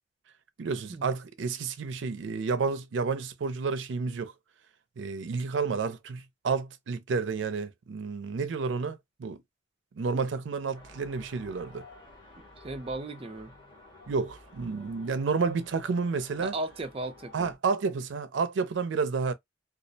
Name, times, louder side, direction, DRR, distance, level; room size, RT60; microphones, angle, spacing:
voice 1, 0.6-4.3 5.0-9.4 9.9-11.8 14.1-16.5 17.3-19.3, right 4 dB, 90° right, 0.4 m, -30 dB
sound 1, 10.7-17.6, left 2 dB, 25° left, 0.9 m, -52 dB
voice 2, 12.6-13.5 16.4-17.5, right 2 dB, 30° right, 0.4 m, -36 dB
2.3 x 2.0 x 2.6 m
head